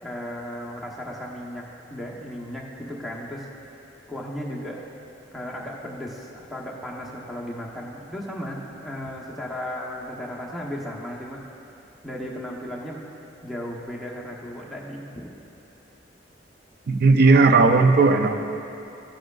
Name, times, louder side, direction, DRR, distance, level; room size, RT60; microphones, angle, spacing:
voice 1, 0.0-1.6 1.9-3.5 4.1-4.8 5.3-11.4 12.0-13.0 13.4-15.3, equal, ahead, -5 dB, 0.9 m, -35 dB
voice 2, 16.9-18.4, right 3 dB, 55° right, 7 dB, 0.5 m, -16 dB
14.5 x 7.8 x 2.4 m, 2.8 s
head